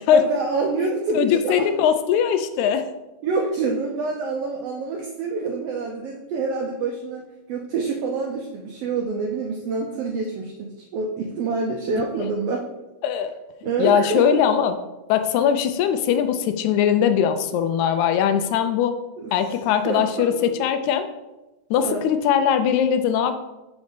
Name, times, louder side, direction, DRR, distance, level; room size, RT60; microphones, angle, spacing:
voice 1, 0.1-1.7 3.2-7.2 7.5-12.7 13.6-14.4 19.2-19.3 19.8-20.5 21.8-22.0, right 4 dB, 80° right, 1 dB, 1.3 m, -26 dB
voice 2, 1.2-2.9 13.0-13.3 13.8-14.8 15.1-19.0 19.3-21.1 21.7-23.3, left 8 dB, 85° left, 9 dB, 1.9 m, -20 dB
5.0 x 4.0 x 5.2 m, 1.0 s
omnidirectional pair, 3.4 m